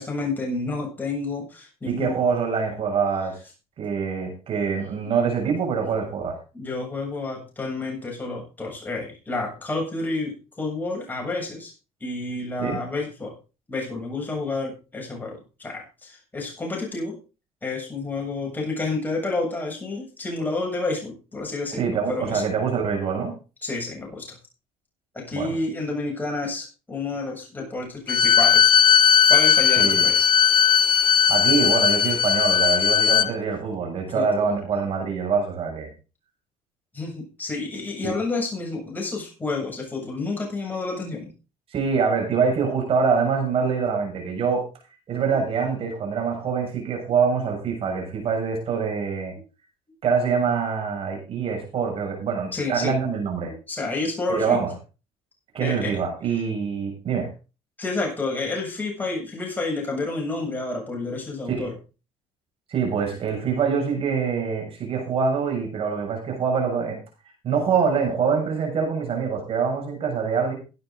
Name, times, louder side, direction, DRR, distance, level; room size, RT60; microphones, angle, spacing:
voice 1, 0.0-2.1 5.0-5.1 5.8-5.9 6.5-11.7 12.0-13.4 13.7-17.2 17.6-22.4 23.6-24.4 25.1-28.7 29.3-30.3 34.1-34.5 36.9-41.3 52.5-53.0 53.7-54.6 55.6-56.0 57.8-61.7, left 3 dB, 15° left, -1 dB, 7.6 m, -30 dB
voice 2, 1.8-3.4 3.8-6.4 12.6-12.8 21.7-23.3 25.3-25.6 29.8-30.1 31.3-35.9 38.0-38.1 41.7-44.6 45.1-49.3 50.0-53.5 54.3-54.7 55.5-57.3 61.5-61.7 62.7-67.0 67.4-70.5, right 6 dB, 50° right, 2 dB, 6.7 m, -25 dB
Bowed string instrument, 28.1-33.3, left 8 dB, 40° left, 1.1 m, -17 dB
17.0 x 9.7 x 3.9 m, 0.32 s
cardioid pair, 115°, 13 cm